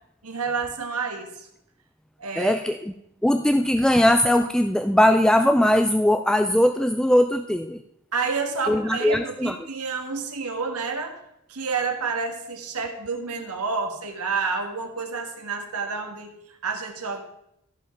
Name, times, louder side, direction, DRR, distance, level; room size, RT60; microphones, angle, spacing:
voice 1, 0.2-1.5 2.2-2.6 8.1-11.2 11.5-17.2, right 4 dB, 85° right, 5 dB, 1.6 m, -29 dB
voice 2, 2.4-2.9 3.2-7.8 8.7-9.6, left 1 dB, 5° left, 7 dB, 0.3 m, -20 dB
14.0 x 5.5 x 5.0 m, 0.78 s
head